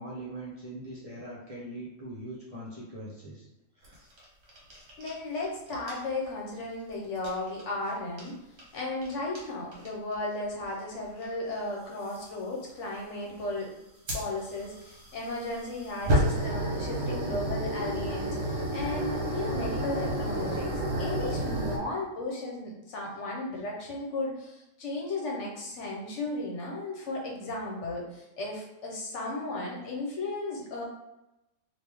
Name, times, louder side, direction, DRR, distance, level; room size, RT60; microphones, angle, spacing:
voice 1, 0.0-3.5 3.8-4.0, right 1 dB, 35° right, -7 dB, 0.7 m, -41 dB
sound 1, 3.8-5.5 5.7-6.0 7.2-7.6 8.2-8.3 8.6-9.1 9.4-9.5 9.7-10.1 11.2-11.3 12.1-12.3 14.1-21.8, right 1 dB, 60° right, 1.1 m, -31 dB
voice 2, 5.0-8.3 8.7-13.8 14.1-30.8, left 2 dB, 65° left, -2 dB, 1.1 m, -35 dB
3.0 x 2.6 x 3.4 m, 0.92 s
omnidirectional pair, 1.4 m